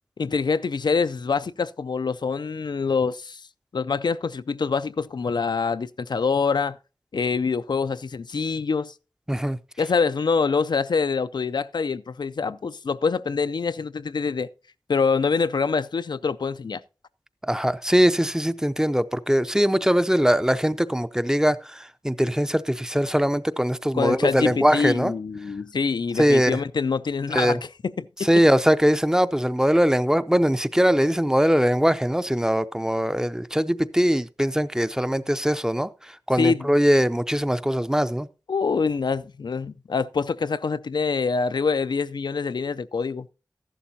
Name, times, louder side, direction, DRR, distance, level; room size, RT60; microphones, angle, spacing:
voice 1, 0.2-3.4 3.7-6.8 7.1-8.9 9.8-14.5 14.9-16.8 23.9-27.7 28.0-28.3 36.4-36.7 38.5-43.3, left 5 dB, 80° left, 0.4 m, -25 dB
voice 2, 17.5-25.1 26.2-26.6 27.3-27.6 28.2-35.9 36.3-38.3, equal, 10° right, 0.5 m, -21 dB
14.0 x 11.5 x 2.7 m
wide cardioid pair, 65°, 8 cm